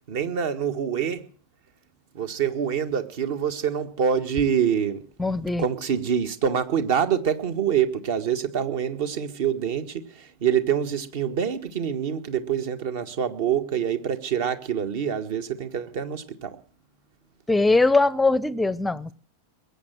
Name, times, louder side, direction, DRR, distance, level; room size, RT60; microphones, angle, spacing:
voice 1, 0.1-1.3 2.1-5.0 5.6-16.6, right 8 dB, 50° right, 1.6 m, -26 dB
voice 2, 5.2-5.6 17.5-19.1, left 3 dB, 5° left, 0.7 m, -21 dB
21.5 x 8.3 x 7.8 m
figure-of-eight pair, 90°, 0 cm